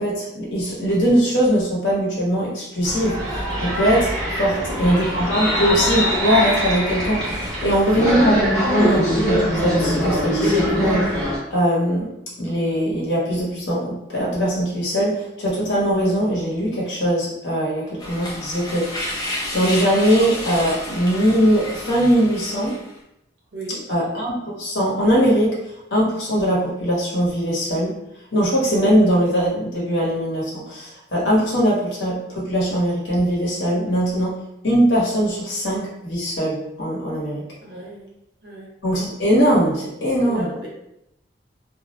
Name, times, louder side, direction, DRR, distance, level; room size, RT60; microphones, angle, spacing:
voice 1, 0.0-3.3 3.6-4.1 4.4-12.1 12.4-19.1 19.5-22.8 23.9-25.6 25.9-28.0 28.3-37.4 38.8-40.5, equal, 80° left, -5 dB, 0.9 m, -21 dB
sound 1, 2.8-11.4, equal, ahead, 0.8 m, -22 dB
voice 2, 4.5-5.3 7.6-8.0 23.5-23.9 37.6-38.1 38.4-38.7 40.2-40.7, right 1 dB, 65° right, -4 dB, 0.8 m, -35 dB
sound 2, 18.0-22.9, left 1 dB, 20° left, 0.5 m, -31 dB
2.3 x 2.0 x 2.9 m, 0.83 s
head